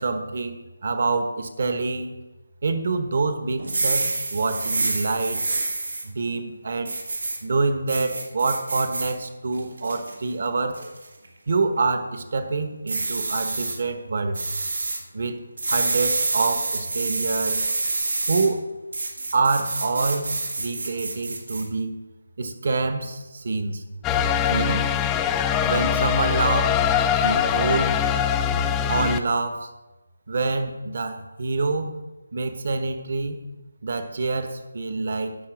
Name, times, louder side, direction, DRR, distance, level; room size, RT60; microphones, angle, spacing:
voice 1, 0.0-2.2 2.6-5.4 6.0-6.9 7.4-10.8 11.5-14.4 15.1-15.4 15.7-17.6 18.3-18.6 19.3-21.9 22.4-23.8 24.5-24.9 25.7-26.7 27.2-28.0 28.8-29.7 30.3-31.9 32.3-33.4 33.8-35.4, right 3 dB, 50° right, 8 dB, 1.3 m, -26 dB
sound 1, 3.6-6.0 6.9-7.4 7.9-9.1 9.6-10.1 10.7-11.1 12.9-13.8 14.3-15.0 15.6-18.5 18.9-21.6, right 3 dB, 80° right, 2.6 m, -27 dB
sound 2, 24.0-29.2, left 8 dB, 10° left, 0.3 m, -22 dB
10.0 x 6.8 x 6.2 m, 1.1 s
figure-of-eight pair, 170°, 0 cm